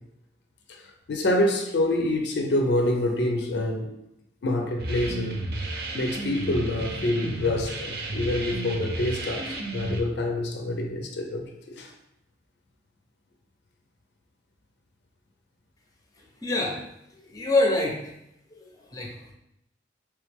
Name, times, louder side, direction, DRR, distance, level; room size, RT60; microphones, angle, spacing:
voice 1, 1.1-3.9 4.4-5.4 5.9-11.9, left 1 dB, 65° left, 0.4 m, -26 dB
sound 1, 4.8-10.0, right 2 dB, 55° right, 0.5 m, -33 dB
voice 2, 16.4-16.8 17.3-18.1 18.5-19.1, left 2 dB, 20° left, 0.6 m, -25 dB
3.3 x 3.1 x 3.3 m
head